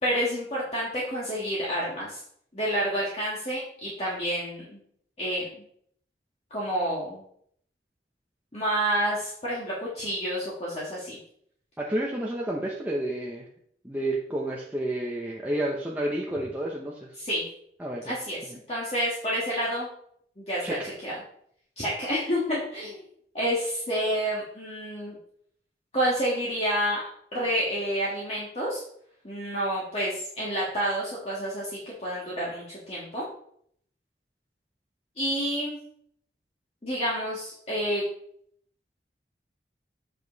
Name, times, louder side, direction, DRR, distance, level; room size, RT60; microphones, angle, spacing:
voice 1, 0.0-2.2 2.5-4.6 5.2-5.5 6.5-7.2 8.5-11.2 17.2-17.4 18.1-18.4 18.7-19.9 20.4-21.2 21.8-23.0 23.3-25.2 25.9-27.0 27.3-28.8 29.2-33.2 35.2-35.8 36.8-38.0, equal, 35° left, -7 dB, 1.9 m, -29 dB
voice 2, 11.8-13.4 13.8-17.1 17.8-18.2 20.6-20.9, right 1 dB, 10° right, -3 dB, 0.9 m, -30 dB
8.3 x 5.3 x 4.0 m, 0.66 s
head